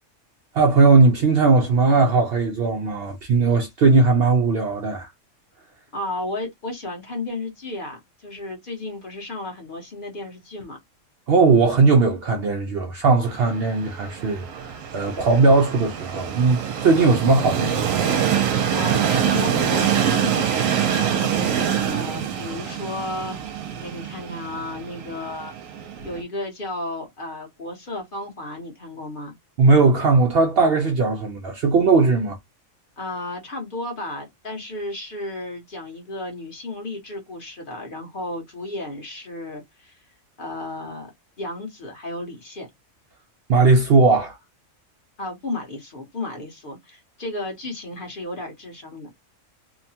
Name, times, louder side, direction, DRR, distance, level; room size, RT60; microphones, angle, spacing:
voice 1, 0.5-5.1 11.3-18.1 29.6-32.4 43.5-44.4, right 3 dB, 60° right, 0.6 m, -18 dB
voice 2, 5.9-10.8 18.7-21.6 21.9-25.5 26.0-29.4 33.0-40.0 40.4-41.1 41.4-42.7 45.2-49.1, left 2 dB, 45° left, 1.1 m, -33 dB
Train, 13.3-26.2, right 8 dB, 80° right, 1.0 m, -25 dB
2.8 x 2.1 x 2.7 m
omnidirectional pair, 1.4 m